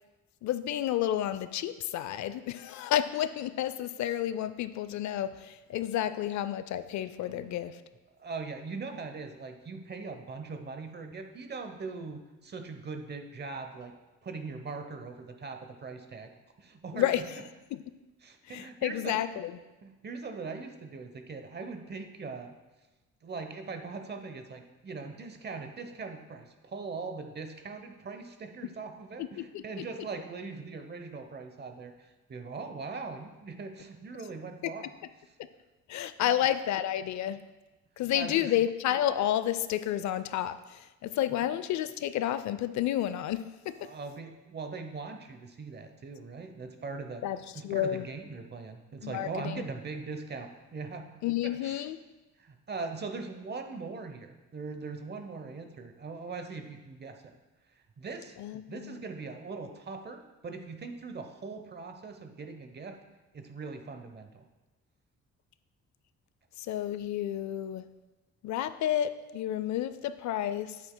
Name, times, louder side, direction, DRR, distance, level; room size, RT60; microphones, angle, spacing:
voice 1, 0.4-7.8 16.9-17.4 17.7-17.8 18.5-19.6 29.2-29.8 35.9-37.5 38.0-43.8 47.2-47.4 47.6-48.1 49.0-49.6 51.2-52.0 58.4-59.0 66.6-67.9 68.4-70.8, left 11 dB, 70° left, 13 dB, 0.4 m, -31 dB
voice 2, 8.2-13.9 14.2-16.3 16.6-17.1 18.2-19.4 19.8-22.5 23.2-34.9 36.2-36.3 38.1-38.5 41.4-41.5 43.8-47.2 47.5-51.0 51.4-51.8 52.4-57.3 58.0-58.4 58.7-63.0 63.3-64.4, right 4 dB, 35° right, 6 dB, 0.8 m, -41 dB
9.1 x 7.6 x 2.2 m, 1.1 s
cardioid pair, 90°, 30 cm